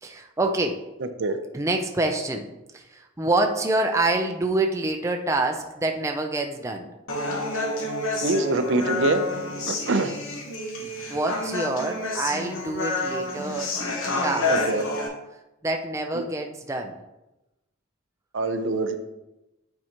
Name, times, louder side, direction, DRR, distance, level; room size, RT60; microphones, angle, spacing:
voice 1, 0.0-0.8 1.5-2.5 2.7-6.9 11.1-13.7 14.2-14.6 15.6-17.0, right 2 dB, 15° right, 3 dB, 0.4 m, -26 dB
Human voice, 7.1-15.1, left 2 dB, 85° left, 1.2 m, -29 dB
voice 2, 8.2-9.2 9.7-10.1 14.5-14.8 18.3-19.0, right 2 dB, 65° right, 8 dB, 0.5 m, -24 dB
8.8 x 4.6 x 2.9 m, 0.96 s
head